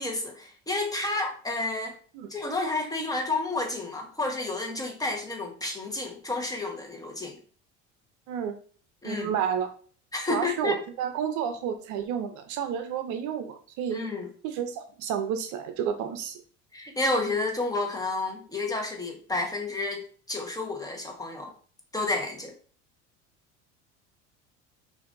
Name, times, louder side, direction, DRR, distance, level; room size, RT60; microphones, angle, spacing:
voice 1, 0.0-2.0 2.3-7.4 9.0-9.3 10.1-10.8 13.9-14.3 16.7-20.0 20.3-21.5 21.9-22.5, left 2 dB, 10° left, 2 dB, 1.2 m, -30 dB
voice 2, 9.0-9.7 10.3-14.0 14.4-16.4, right 8 dB, 60° right, 8 dB, 0.6 m, -31 dB
5.7 x 2.7 x 2.6 m, 0.42 s
hypercardioid pair, 85°, 34 cm